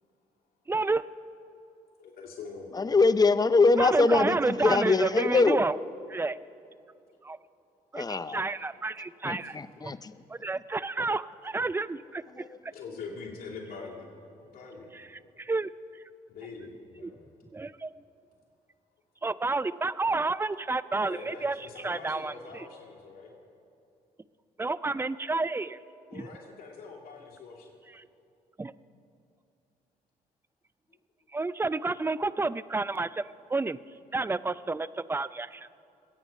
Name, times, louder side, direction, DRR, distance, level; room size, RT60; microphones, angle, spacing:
voice 1, 0.7-1.0 3.8-5.8 6.1-6.4 7.2-7.4 7.9-9.6 9.8-9.9 10.3-12.5 14.9-15.1 15.4-15.7 17.0-17.1 17.5-17.9 19.2-21.6 21.8-22.7 24.6-25.8 26.1-26.3 27.9-28.1 28.6-28.7 31.3-33.2 33.5-33.8 34.1-35.8, right 3 dB, 15° right, 17 dB, 0.4 m, -30 dB
voice 2, 2.0-2.7 5.3-5.4 5.7-5.8 6.2-6.3 8.4-8.5 9.4-9.8 12.7-14.0 14.4-14.9 15.2-15.3 16.3-17.3 21.0-23.3 26.1-27.8, left 4 dB, 70° left, -2 dB, 2.7 m, -44 dB
voice 3, 2.7-5.6 7.9-8.4 9.2-10.1 12.4-12.5, left 3 dB, 25° left, 13 dB, 0.7 m, -23 dB
22.5 x 8.9 x 5.4 m, 2.6 s
supercardioid pair, 65°, 16 cm